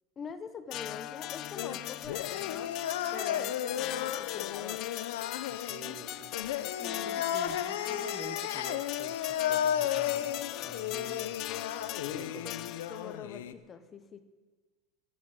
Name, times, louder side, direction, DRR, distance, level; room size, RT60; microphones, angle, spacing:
voice 1, 0.2-2.8 3.1-4.9 6.8-7.2 12.1-12.3 12.9-14.2, left 6 dB, 25° left, 10 dB, 1.2 m, -44 dB
sound 1, 0.7-13.2, left 15 dB, 45° left, 0.4 m, -40 dB
sound 2, 1.6-13.5, left 11 dB, 85° left, 0.8 m, -34 dB
voice 2, 5.5-6.3 7.0-11.6 12.0-12.5, right 6 dB, 30° right, 11 dB, 1.0 m, -48 dB
16.0 x 8.5 x 8.8 m, 1.3 s
supercardioid pair, 135°, 0 cm